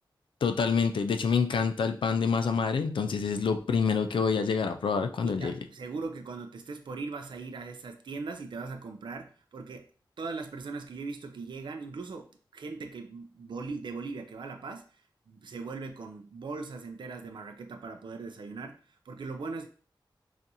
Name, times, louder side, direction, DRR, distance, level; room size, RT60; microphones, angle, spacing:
voice 1, 0.4-5.5, left 5 dB, 80° left, 9 dB, 0.3 m, -27 dB
voice 2, 5.2-9.9 10.2-14.8 15.3-19.7, right 4 dB, 70° right, 5 dB, 0.4 m, -39 dB
4.0 x 2.4 x 2.6 m, 0.41 s
wide cardioid pair, 100°, 8 cm